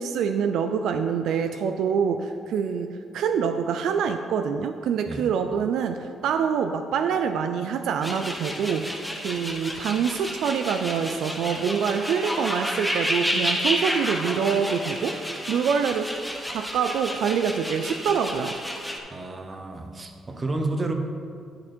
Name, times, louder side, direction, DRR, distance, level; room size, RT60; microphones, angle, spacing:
voice 1, 0.0-16.1 16.5-18.6, right 7 dB, 80° right, 7 dB, 0.4 m, -26 dB
sound 1, 8.0-19.0, equal, ahead, 1.1 m, -30 dB
voice 2, 19.1-20.9, right 2 dB, 30° right, 5 dB, 1.0 m, -30 dB
10.5 x 6.0 x 4.4 m, 2.3 s
cardioid pair, 90°, 0 cm